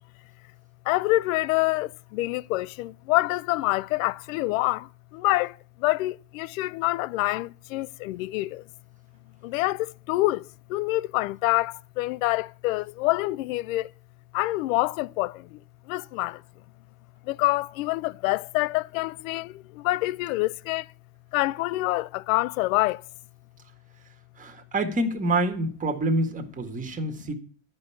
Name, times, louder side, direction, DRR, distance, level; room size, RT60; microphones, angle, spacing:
voice 1, 0.9-4.8 5.2-5.5 5.8-8.5 9.4-10.4 10.7-13.8 14.3-15.3 15.9-16.4 17.3-19.5 19.8-20.8 21.3-23.0, left 19 dB, 70° left, 0.6 m, -26 dB
voice 2, 24.4-27.3, right 1 dB, 20° right, 1.8 m, -27 dB
11.5 x 5.4 x 8.5 m
supercardioid pair, 115°, 42 cm